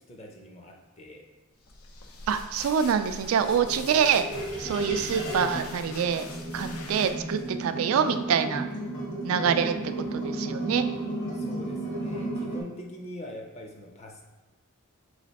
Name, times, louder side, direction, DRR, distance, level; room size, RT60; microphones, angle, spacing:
voice 1, 0.1-1.2 11.3-14.2, left 1 dB, 30° left, 1 dB, 0.6 m, -43 dB
sound 1, 1.6-7.5, left 3 dB, 85° left, 0.6 m, -44 dB
voice 2, 2.3-4.3 4.6-6.2 6.5-8.7 9.2-10.9, right 7 dB, 75° right, 9 dB, 0.3 m, -26 dB
sound 2, 3.3-12.6, right 2 dB, 60° left, 1.3 m, -34 dB
4.1 x 3.2 x 4.0 m, 1.2 s
head